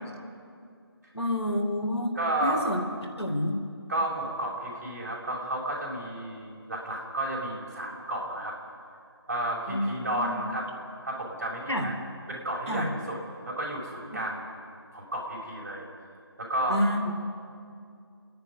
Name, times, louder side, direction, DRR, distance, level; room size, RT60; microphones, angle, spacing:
voice 1, 1.1-2.8 3.2-3.6 9.7-10.4 11.7-11.9 12.7-12.9 16.7-17.1, left 1 dB, 85° left, 1 dB, 4.2 m, -29 dB
voice 2, 2.1-2.7 3.9-8.5 9.3-10.7 11.0-11.9 12.3-13.2 13.5-14.5 14.9-15.8 16.4-16.8, right 1 dB, 35° right, -2 dB, 5.8 m, -32 dB
29.5 x 10.5 x 9.7 m, 2.4 s
figure-of-eight pair, 160°, 14 cm